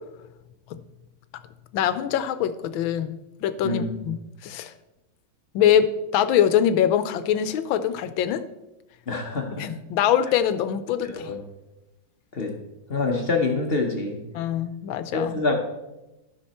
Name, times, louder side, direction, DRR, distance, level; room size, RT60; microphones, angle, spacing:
voice 1, 1.7-4.7 5.5-8.5 9.6-11.3 14.3-15.4, left 9 dB, 85° left, 12 dB, 1.4 m, -23 dB
voice 2, 3.6-4.0 9.1-9.7 11.0-11.4 12.3-12.5 12.9-14.2 15.1-15.5, left 3 dB, 40° left, 3 dB, 1.0 m, -26 dB
12.5 x 6.1 x 4.3 m, 0.99 s
omnidirectional pair, 2.1 m